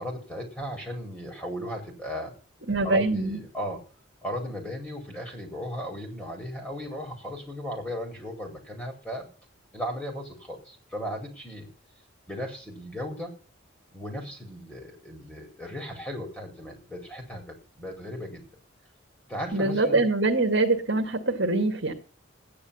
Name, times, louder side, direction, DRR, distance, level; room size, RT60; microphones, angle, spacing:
voice 1, 0.0-2.3 2.8-3.8 4.2-9.3 9.7-11.7 12.3-13.3 13.9-17.4 17.8-18.4 19.3-20.0, equal, 5° left, 1 dB, 4.5 m, -36 dB
voice 2, 2.7-3.4 19.5-21.9, right 2 dB, 60° right, 3 dB, 2.1 m, -24 dB
13.5 x 10.5 x 7.1 m, 0.38 s
head